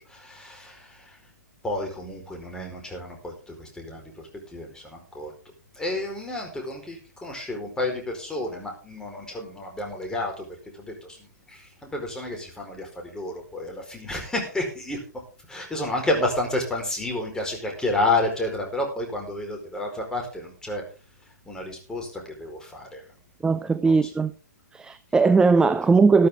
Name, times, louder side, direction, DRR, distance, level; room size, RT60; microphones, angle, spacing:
voice 1, 0.1-1.2 1.6-5.3 5.7-10.4 10.8-11.2 11.5-15.0 15.5-20.8 21.5-23.0 23.8-24.1, left 2 dB, 5° left, 4.7 m, -30 dB
voice 2, 23.4-24.3 24.7-26.3, right 4 dB, 10° right, 0.5 m, -19 dB
13.0 x 12.5 x 3.8 m
hypercardioid pair, 130°, 9 cm